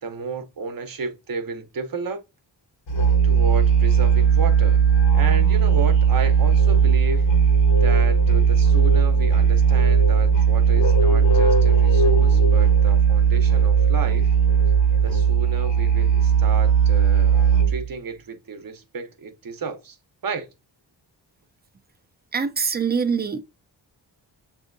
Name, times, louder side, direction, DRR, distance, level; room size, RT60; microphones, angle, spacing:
voice 1, 0.0-2.2 3.2-4.8 5.1-7.3 7.8-14.4 15.0-20.0 20.2-20.5, right 4 dB, 50° right, 0.8 m, -32 dB
Musical instrument, 2.9-17.9, right 6 dB, 75° left, 1.3 m, -17 dB
voice 2, 22.3-23.4, right 5 dB, 25° right, 0.4 m, -24 dB
7.1 x 2.7 x 2.5 m
wide cardioid pair, 130°, 45 cm